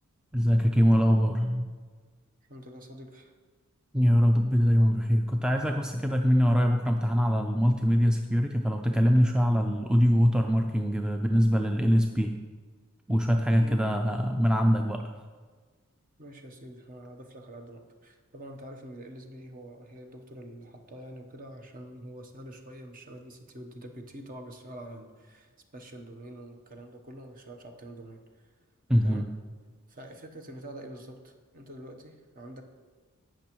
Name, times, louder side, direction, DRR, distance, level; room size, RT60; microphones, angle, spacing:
voice 1, 0.3-1.7 3.9-12.3 13.1-15.2 28.9-29.2, equal, 5° right, 3 dB, 0.3 m, -23 dB
voice 2, 2.5-3.3 13.6-13.8 16.2-28.5 29.0-29.3 29.9-32.6, right 1 dB, 40° right, 4 dB, 0.9 m, -46 dB
16.5 x 6.1 x 3.0 m, 1.5 s
head